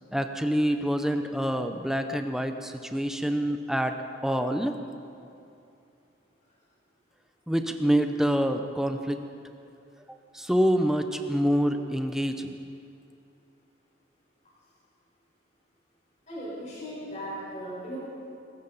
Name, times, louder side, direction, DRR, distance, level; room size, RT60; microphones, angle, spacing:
voice 1, 0.1-3.9 4.2-4.8 7.5-9.2 10.1-12.5, equal, ahead, 6 dB, 0.7 m, -26 dB
voice 2, 16.3-18.0, equal, 35° left, -8 dB, 4.8 m, -37 dB
22.5 x 13.5 x 4.0 m, 2.6 s
head